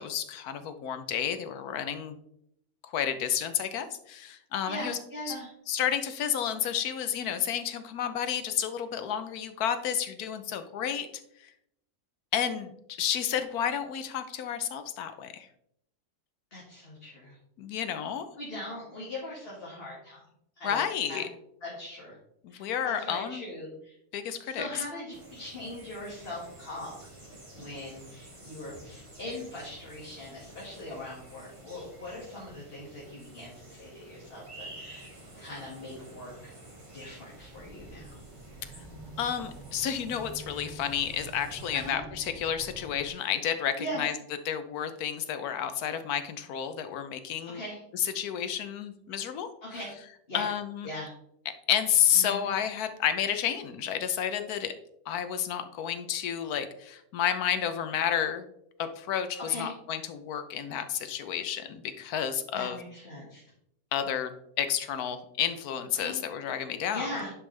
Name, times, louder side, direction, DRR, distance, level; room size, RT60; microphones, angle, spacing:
voice 1, 0.0-2.2 2.8-5.0 5.3-5.4 5.7-11.1 12.3-15.5 17.6-18.3 20.6-21.3 22.4-23.4 24.1-24.7 39.2-44.1 44.4-47.6 47.9-49.5 50.3-50.9 51.5-54.7 55.1-58.4 58.8-62.8 63.9-64.3 64.6-67.1, left 9 dB, 85° left, 9 dB, 1.3 m, -31 dB
voice 2, 4.7-5.5 16.5-17.4 18.3-20.2 20.6-20.8 21.1-21.2 21.6-22.2 22.5-24.0 24.4-26.9 27.5-35.1 35.4-36.5 36.9-38.2 41.7-42.0 43.8-44.1 47.5-47.8 49.6-50.0 50.3-50.5 50.8-51.1 52.1-52.5 59.4-59.7 62.5-63.4 66.0-66.2 66.9-67.3, left 1 dB, 40° left, -5 dB, 2.2 m, -40 dB
sound 1, 25.1-41.9, right 1 dB, 20° right, 1.7 m, -50 dB
sound 2, 32.9-33.3 33.9-34.0 34.3-43.1, right 2 dB, 50° right, 2.0 m, -48 dB
10.5 x 5.3 x 3.3 m, 0.75 s
omnidirectional pair, 1.6 m